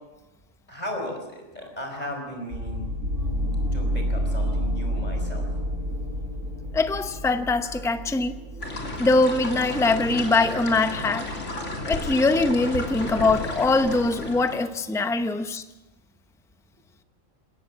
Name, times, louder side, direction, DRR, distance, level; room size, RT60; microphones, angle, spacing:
voice 1, 0.7-2.9 3.7-5.5, left 1 dB, 30° left, 3 dB, 5.2 m, -35 dB
sound 1, 2.5-14.4, equal, 75° right, 6.7 m, -31 dB
voice 2, 6.7-8.3 9.0-11.3 11.9-15.6, left 3 dB, 5° left, 9 dB, 0.7 m, -22 dB
sound 2, 8.6-14.6, left 2 dB, 65° left, 3.5 m, -33 dB
22.0 x 17.5 x 7.5 m, 1.1 s
omnidirectional pair, 1.3 m